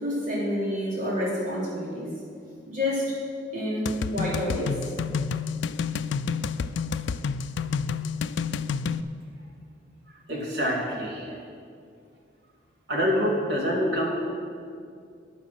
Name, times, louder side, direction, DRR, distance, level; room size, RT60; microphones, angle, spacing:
voice 1, 0.0-2.1 2.7-3.1 3.5-4.7, left 1 dB, 45° right, -6 dB, 3.7 m, -28 dB
sound 1, 3.8-9.0, left 5 dB, 90° left, 0.4 m, -29 dB
voice 2, 9.3-9.7 10.1-11.4 12.9-14.2, equal, 85° right, -2 dB, 2.8 m, -27 dB
10.5 x 10.0 x 6.1 m, 2.3 s
head